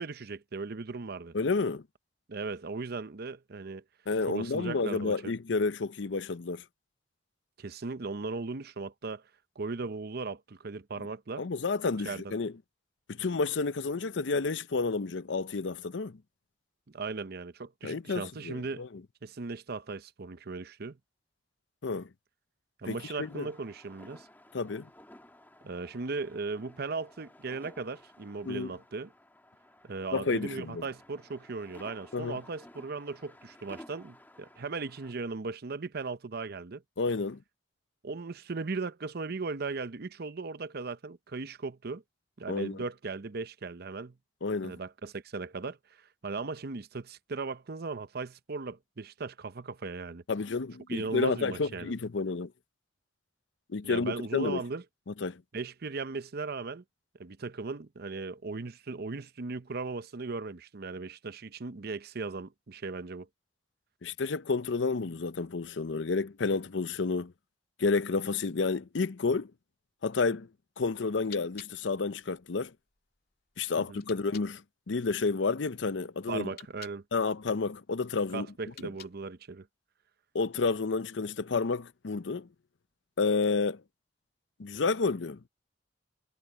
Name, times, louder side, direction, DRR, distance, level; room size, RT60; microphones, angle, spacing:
voice 1, 0.0-1.3 2.3-3.8 4.3-5.3 7.6-9.2 9.6-11.4 12.1-12.4 16.9-18.9 19.2-21.0 22.8-24.3 25.6-29.1 29.8-36.8 38.0-42.0 42.4-44.2 44.6-50.2 50.9-51.9 53.8-54.8 55.5-56.8 57.2-63.3 73.8-74.0 76.3-77.0 78.3-79.7, right 4 dB, 55° right, 0.7 m, -37 dB
voice 2, 1.3-1.8 4.1-6.6 11.0-11.1 11.4-12.5 13.1-16.2 17.8-18.9 21.8-22.1 22.9-23.5 24.5-24.9 28.5-28.7 30.1-30.8 32.1-32.4 37.0-37.4 42.5-42.8 44.4-44.8 50.3-52.5 53.7-54.6 55.1-55.4 64.0-67.3 67.8-69.5 70.0-70.5 70.8-72.7 73.6-74.6 74.9-76.5 77.1-78.5 80.3-82.5 83.2-83.8 84.6-85.5, left 4 dB, 75° left, 0.7 m, -30 dB
sound 1, 23.0-35.1, left 1 dB, 10° left, 2.3 m, -55 dB
sound 2, 71.2-74.5 76.4-77.0 78.6-79.4, left 10 dB, 55° left, 2.7 m, -52 dB
head